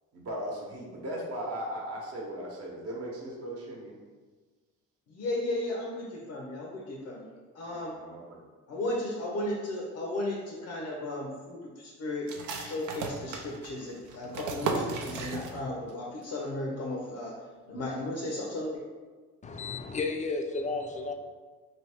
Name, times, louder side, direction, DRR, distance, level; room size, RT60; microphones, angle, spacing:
voice 1, 0.1-4.0 7.6-8.4, right 1 dB, 50° right, -3 dB, 0.8 m, -38 dB
voice 2, 5.1-7.9 8.7-12.3 12.6-17.3 17.7-18.7, left 1 dB, 85° left, -2 dB, 0.7 m, -35 dB
sound 1, 12.3-15.9 16.2-16.3 16.7-17.2, right 4 dB, 80° right, 0.5 m, -36 dB
voice 3, 19.4-21.1, left 3 dB, 25° left, 4 dB, 0.3 m, -32 dB
2.8 x 2.7 x 3.3 m, 1.4 s
cardioid pair, 90°, 30 cm